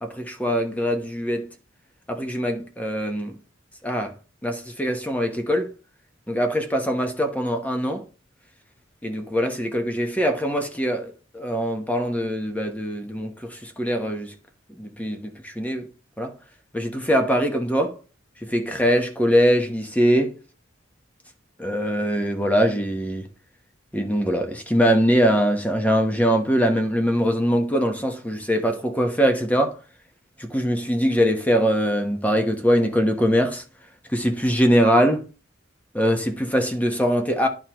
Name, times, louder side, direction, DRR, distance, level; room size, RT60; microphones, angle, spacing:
voice 1, 0.0-1.5 2.1-3.4 3.8-4.1 4.4-5.7 6.3-8.0 9.0-14.3 14.7-15.9 16.2-16.3 16.7-17.9 18.4-20.4 21.6-23.3 23.9-29.8 30.4-33.6 34.1-35.3 35.9-37.5, equal, 10° left, 1.0 m, -22 dB
11.0 x 4.6 x 3.0 m
head